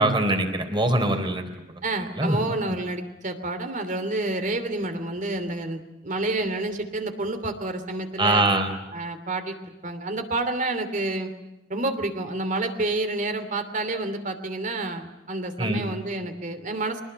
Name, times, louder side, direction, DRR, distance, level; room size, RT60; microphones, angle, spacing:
voice 1, 0.0-1.5 2.2-2.4 8.2-8.7 15.6-15.8, right 2 dB, 25° right, 6 dB, 3.7 m, -22 dB
voice 2, 1.8-8.5 8.9-11.3 11.7-17.0, right 2 dB, 45° right, 8 dB, 3.0 m, -29 dB
25.0 x 20.0 x 9.1 m, 0.97 s
head